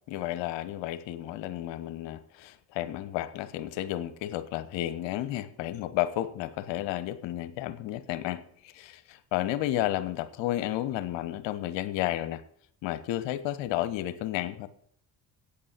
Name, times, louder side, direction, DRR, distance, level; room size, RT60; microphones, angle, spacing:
voice 1, 0.1-12.4 12.8-14.7, left 14 dB, 60° left, 13 dB, 1.0 m, -32 dB
8.7 x 8.4 x 7.3 m, 0.65 s
hypercardioid pair, 50°, 49 cm